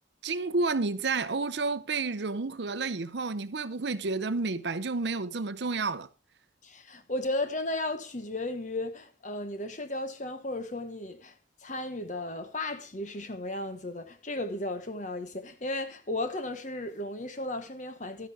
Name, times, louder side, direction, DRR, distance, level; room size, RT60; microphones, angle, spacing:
voice 1, 0.2-6.1, right 3 dB, 65° right, 0.7 m, -30 dB
voice 2, 6.6-11.3 11.6-18.3, left 2 dB, 40° left, 1.2 m, -35 dB
12.5 x 10.0 x 3.5 m
head